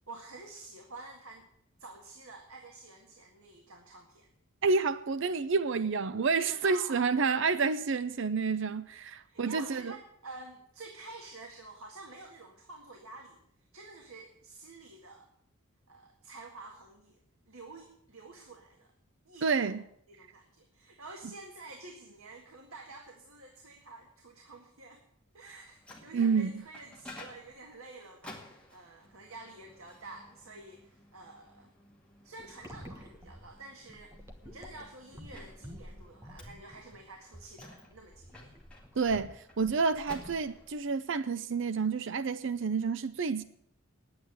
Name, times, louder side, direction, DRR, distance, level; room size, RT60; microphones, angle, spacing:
voice 1, 0.1-1.5 1.8-4.3 6.4-7.3 9.3-13.4 13.7-15.3 15.9-17.2 17.5-18.9 19.2-19.7 20.1-25.0 25.3-31.7 32.2-34.2 34.4-38.5, right 3 dB, 90° right, 1.8 m, -49 dB
voice 2, 4.6-9.9 19.4-19.8 26.1-26.5 39.0-43.4, right 4 dB, 60° right, 0.5 m, -29 dB
Microwave oven, 25.5-40.9, left 2 dB, 5° left, 2.1 m, -54 dB
sound 1, 32.4-40.8, equal, 15° right, 1.3 m, -50 dB
10.0 x 8.8 x 9.4 m
head